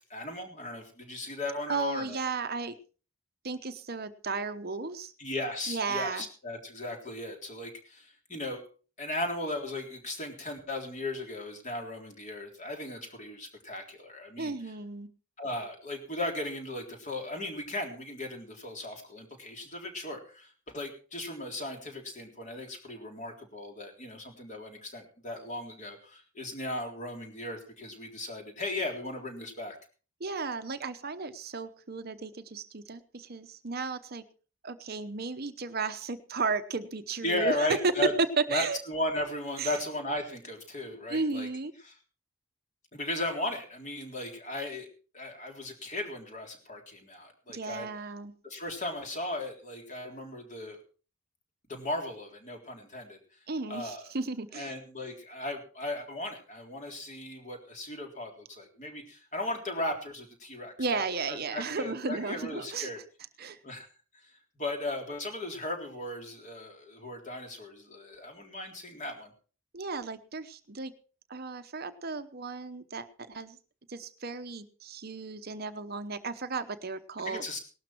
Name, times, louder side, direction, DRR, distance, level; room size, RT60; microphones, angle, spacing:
voice 1, 0.1-2.2 5.2-8.7 9.0-14.7 15.4-29.8 37.2-38.1 38.5-41.5 41.8-41.9 42.9-44.9 45.1-47.9 48.4-50.8 51.7-53.2 53.7-54.1 54.5-61.0 61.3-63.0 63.6-63.9 64.2-69.3 77.2-77.6, left 1 dB, 35° left, 3 dB, 3.7 m, -36 dB
voice 2, 1.7-2.7 3.4-5.1 5.7-6.3 14.4-15.1 30.2-34.2 34.6-37.9 38.4-38.8 39.6-39.7 41.1-41.7 47.5-48.3 53.5-54.7 60.8-62.9 63.4-63.6 69.7-70.9 71.3-73.6 73.9-77.4, right 4 dB, 45° right, 10 dB, 0.9 m, -34 dB
18.5 x 12.5 x 4.5 m, 0.39 s
head